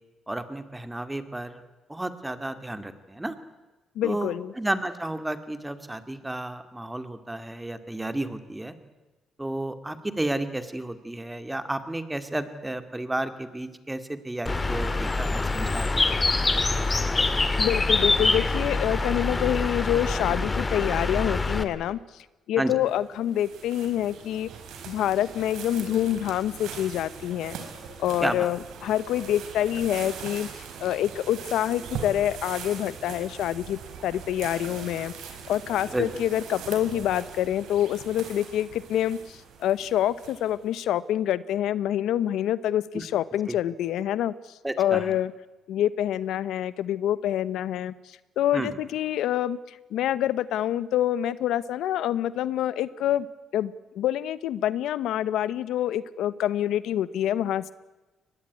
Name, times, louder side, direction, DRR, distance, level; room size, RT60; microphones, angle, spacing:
voice 1, 0.3-1.6 1.9-3.3 4.0-8.7 9.4-16.0 22.6-22.7 28.2-28.5 35.9-36.1 42.9-43.0 43.5-43.6 44.6-45.1 48.5-48.7, right 1 dB, 10° right, 10 dB, 2.2 m, -32 dB
voice 2, 4.0-4.5 17.6-24.5 24.9-27.6 28.0-30.5 30.8-45.3 45.7-53.3 53.5-57.7, left 11 dB, 85° left, 17 dB, 0.8 m, -27 dB
Bird, 14.5-21.6, left 3 dB, 25° left, 2.1 m, -25 dB
sound 1, 22.9-40.7, right 6 dB, 85° right, 4.8 m, -41 dB
23.0 x 19.5 x 9.7 m, 1.1 s
cardioid pair, 90°, 0 cm